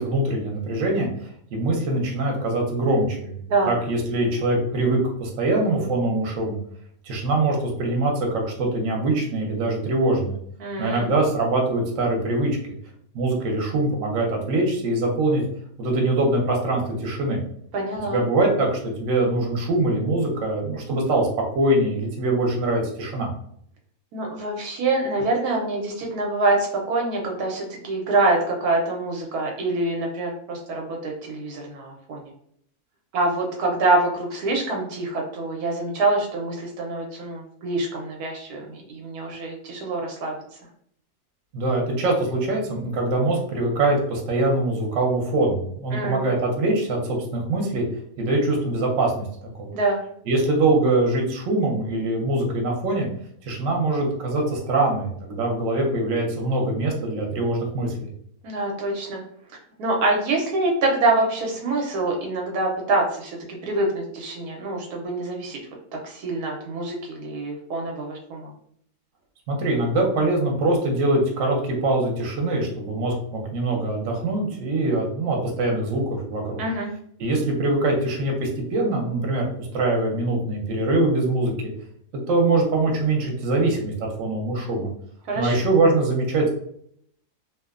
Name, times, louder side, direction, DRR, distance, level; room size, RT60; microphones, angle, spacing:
voice 1, 0.0-6.6 7.0-10.4 10.8-12.6 13.1-15.4 15.8-17.4 18.1-23.3 41.5-47.8 48.2-49.3 49.6-49.7 50.3-53.1 53.4-58.1 69.5-76.6 77.2-81.5 82.3-84.9 85.4-86.5, right 2 dB, 65° right, 0 dB, 1.0 m, -23 dB
voice 2, 10.6-11.1 17.7-18.2 24.1-32.3 33.1-40.4 45.9-46.3 49.7-50.0 58.4-59.2 59.8-65.6 66.0-68.5 76.6-76.9 85.3-85.6, right 2 dB, 85° right, 0 dB, 1.1 m, -25 dB
2.8 x 2.1 x 2.3 m, 0.67 s
omnidirectional pair, 1.6 m